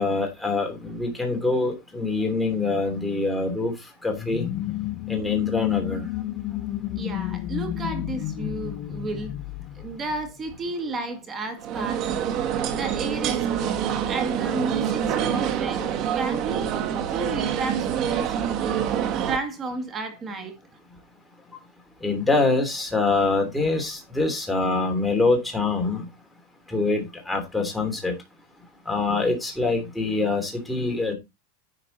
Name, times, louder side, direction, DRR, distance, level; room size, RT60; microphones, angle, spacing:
voice 1, 0.0-3.7 4.0-4.4 5.1-6.0 22.0-26.0 26.7-28.1 28.9-31.1, left 3 dB, 5° left, 3.1 m, -24 dB
sound 1, 4.1-10.5, left 13 dB, 40° left, 0.7 m, -31 dB
voice 2, 7.0-9.3 9.7-12.4 12.7-18.4 19.2-20.6, right 3 dB, 20° right, 2.0 m, -32 dB
sound 2, 11.6-19.4, right 9 dB, 40° right, 1.5 m, -26 dB
11.0 x 5.9 x 4.1 m
supercardioid pair, 150°, 0 cm